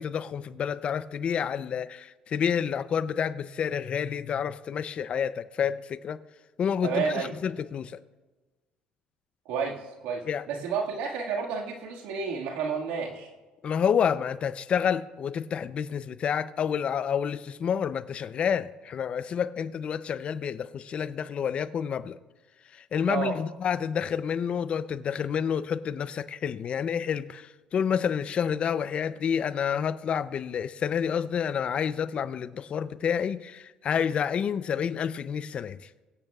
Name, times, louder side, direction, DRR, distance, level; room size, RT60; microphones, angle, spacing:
voice 1, 0.0-6.2 6.6-8.0 10.3-10.4 13.6-22.2 22.7-35.8, left 7 dB, 45° left, 0.5 m, -29 dB
voice 2, 6.8-7.3 9.5-13.3 23.1-23.4, right 6 dB, 90° right, 1.8 m, -31 dB
23.0 x 9.0 x 2.4 m
cardioid pair, 105°, 3 cm